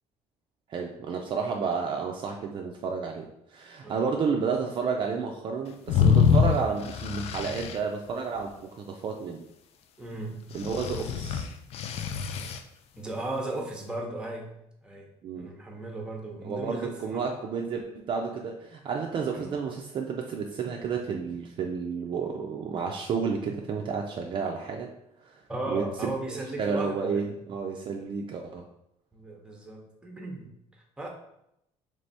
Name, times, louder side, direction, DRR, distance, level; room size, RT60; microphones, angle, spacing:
voice 1, 0.7-9.4 10.5-11.5 15.2-15.5 16.4-24.9 25.3-25.4 25.7-26.1 26.6-28.7, right 5 dB, 40° right, 2 dB, 0.4 m, -31 dB
voice 2, 3.8-4.2 10.0-10.5 13.0-14.5 14.8-15.1 15.3-17.2 19.3-19.5 25.5-27.3 29.1-31.1, right 2 dB, 5° right, 1 dB, 0.8 m, -36 dB
sound 1, 5.9-7.8 10.6-12.6, left 7 dB, 55° left, 0.4 m, -24 dB
3.3 x 3.3 x 4.1 m, 0.79 s
cardioid pair, 150°, 13 cm